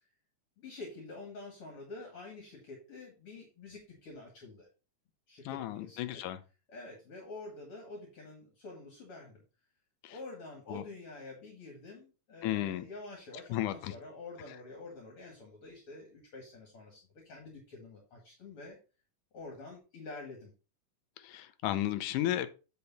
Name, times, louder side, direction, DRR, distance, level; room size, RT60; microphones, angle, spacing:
voice 1, 0.6-4.7 5.3-6.3 6.7-9.4 10.1-18.8 19.3-20.5, left 3 dB, 45° left, 2.7 m, -47 dB
voice 2, 5.5-6.4 10.0-10.1 10.7-10.8 12.4-12.9 13.5-13.9 21.2-22.5, left 13 dB, 80° left, 2.2 m, -33 dB
8.7 x 5.4 x 4.2 m
omnidirectional pair, 3.7 m